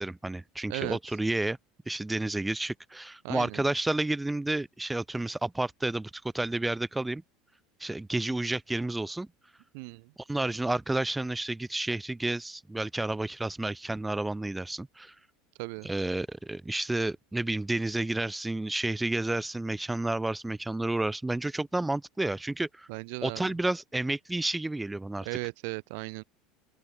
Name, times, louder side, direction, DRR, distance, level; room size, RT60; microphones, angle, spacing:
voice 1, 0.0-1.6 1.9-7.2 7.8-9.3 10.3-15.2 15.8-22.9 23.2-25.3, right 2 dB, 10° right, 2.3 m, -31 dB
voice 2, 0.7-1.0 3.2-3.6 9.7-10.1 15.6-15.9 22.9-23.4 25.2-26.2, right 33 dB, 60° right, 0.8 m, -36 dB
open air
figure-of-eight pair, 70°, 0 cm